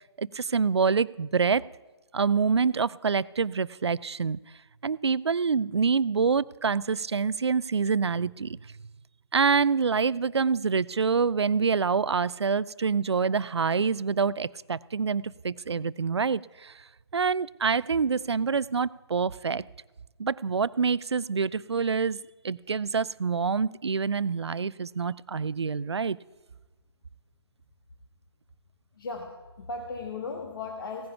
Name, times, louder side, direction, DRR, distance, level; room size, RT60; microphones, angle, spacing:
voice 1, 0.2-1.6 2.1-4.4 4.8-8.6 9.3-16.7 17.1-19.6 20.2-22.2 22.4-26.2, right 5 dB, 75° right, 21 dB, 0.4 m, -26 dB
voice 2, 29.0-31.1, left 3 dB, 55° left, 4 dB, 1.4 m, -36 dB
16.5 x 9.6 x 5.8 m, 1.2 s
figure-of-eight pair, 135°, 14 cm